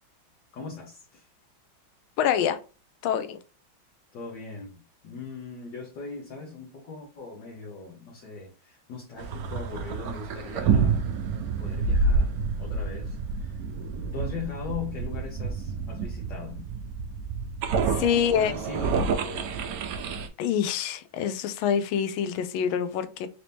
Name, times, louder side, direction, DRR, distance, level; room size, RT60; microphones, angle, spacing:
voice 1, 0.5-1.3 4.1-11.1 11.6-13.6 14.1-16.6 18.1-19.7, left 4 dB, 65° left, 1.5 m, -39 dB
voice 2, 2.2-2.6 3.0-3.4 18.0-18.5 20.4-23.3, left 8 dB, 85° left, 1.4 m, -26 dB
sound 1, 9.2-20.3, right 4 dB, 80° right, 0.8 m, -28 dB
4.1 x 2.9 x 3.3 m
omnidirectional pair, 2.2 m